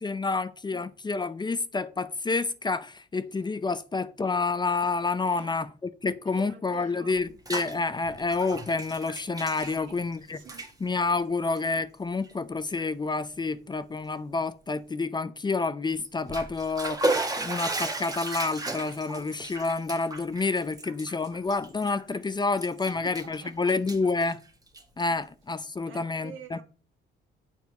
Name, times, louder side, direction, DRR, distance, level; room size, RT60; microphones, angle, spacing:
voice 1, 0.0-5.7 6.0-10.4 10.8-24.4 25.0-26.6, left 3 dB, 20° left, 0.6 m, -29 dB
voice 2, 5.2-5.5 6.0-7.2 9.7-10.0 10.3-10.7 19.1-19.3 22.8-23.7 25.1-25.2 25.9-26.6, right 8 dB, 80° right, 1.8 m, -47 dB
Bathtub (filling or washing), 7.1-7.7 8.0-10.1 10.4-10.7 11.4-11.6 12.2-12.3 12.8-12.9 16.0-22.2 22.6-23.4 23.7-25.0, right 2 dB, 20° right, 1.4 m, -34 dB
7.1 x 4.5 x 6.6 m
cardioid pair, 90°, 20 cm